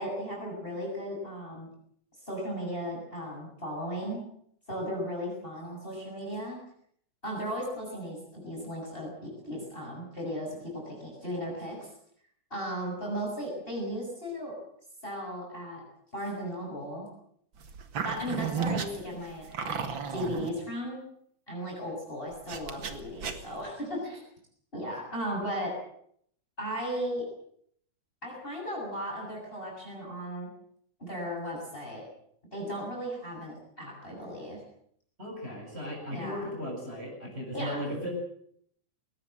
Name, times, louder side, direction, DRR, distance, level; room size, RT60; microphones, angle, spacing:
voice 1, 0.0-1.7 2.3-4.2 4.7-6.6 7.2-11.9 12.5-14.5 15.0-15.8 16.1-17.0 18.0-21.0 21.5-24.2 24.7-25.7 26.6-27.2 28.2-30.5 31.0-32.1 32.5-34.6 36.1-36.5 37.5-37.8, equal, 15° left, -1 dB, 7.4 m, -36 dB
sound 1, 17.6-20.5 22.5-23.6, right 6 dB, 45° right, 2.3 m, -34 dB
voice 2, 35.2-38.1, equal, 20° right, -1 dB, 8.4 m, -36 dB
21.5 x 19.0 x 7.9 m, 0.67 s
omnidirectional pair, 3.4 m